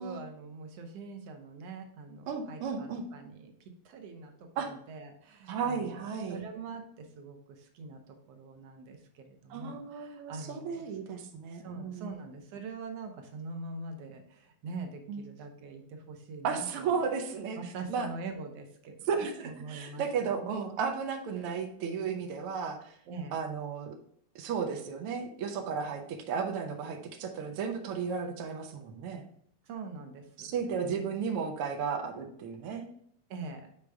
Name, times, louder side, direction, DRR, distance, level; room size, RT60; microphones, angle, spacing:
voice 1, 0.0-6.0 6.3-10.9 11.5-16.9 17.6-20.5 23.1-23.4 29.6-30.5 33.3-33.7, right 4 dB, 65° right, 5 dB, 1.6 m, -44 dB
voice 2, 2.3-3.0 4.6-4.7 5.5-6.4 9.5-12.1 15.1-15.2 16.4-17.6 17.9-18.1 19.1-22.9 23.3-23.9 24.3-29.2 30.4-32.9, right 6 dB, 85° right, 3 dB, 1.2 m, -34 dB
6.6 x 5.0 x 3.4 m, 0.68 s
omnidirectional pair, 3.6 m